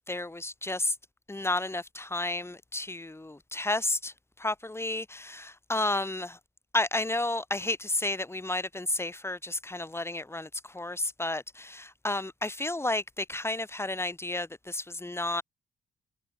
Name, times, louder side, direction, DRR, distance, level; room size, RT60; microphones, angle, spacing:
voice 1, 0.1-0.9 1.3-4.1 4.4-6.4 6.7-10.5 10.7-15.4, left 2 dB, 10° left, 3.4 m, -31 dB
cardioid pair, 90°, 20 cm